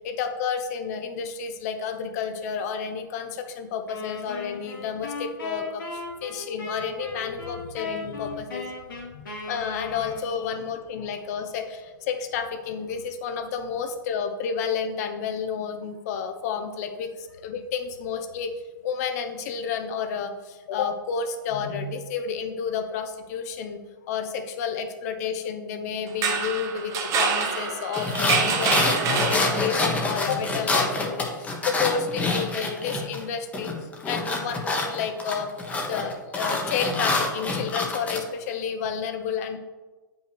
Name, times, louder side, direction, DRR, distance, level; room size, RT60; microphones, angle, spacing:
voice 1, 0.0-8.7 9.1-23.8 24.1-39.6, left 6 dB, 50° left, 7 dB, 0.9 m, -31 dB
sound 1, 3.9-10.5, left 3 dB, 80° left, 2.3 m, -37 dB
sound 2, 26.1-30.0, right 6 dB, 30° right, 1.0 m, -26 dB
sound 3, 28.0-33.2 33.5-38.2, left 3 dB, 15° left, 1.2 m, -26 dB
8.8 x 5.4 x 3.5 m, 1.3 s
hypercardioid pair, 125°, 11 cm